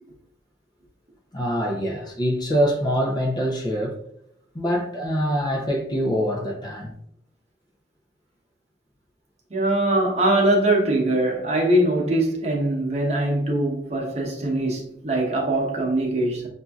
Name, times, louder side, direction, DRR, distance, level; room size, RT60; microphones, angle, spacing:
voice 1, 1.3-4.0 4.5-6.9, equal, 25° left, 0.6 m, -24 dB
voice 2, 9.5-16.5, right 1 dB, 40° right, 0.9 m, -22 dB
6.2 x 2.6 x 2.3 m
head